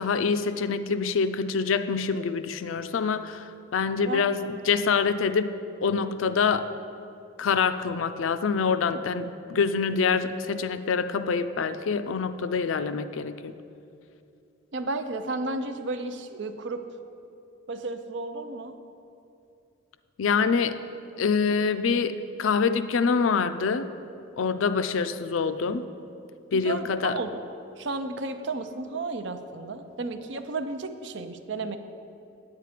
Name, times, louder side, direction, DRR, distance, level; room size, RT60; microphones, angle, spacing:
voice 1, 0.0-6.7 7.4-13.5 20.2-20.8 21.2-23.9 24.4-25.9 26.5-27.2, left 5 dB, 90° left, 12 dB, 0.4 m, -26 dB
voice 2, 4.0-4.6 14.7-16.9 17.7-18.8 26.5-27.4 27.8-31.8, right 3 dB, 65° right, 8 dB, 0.6 m, -33 dB
8.2 x 8.2 x 5.0 m, 2.6 s
head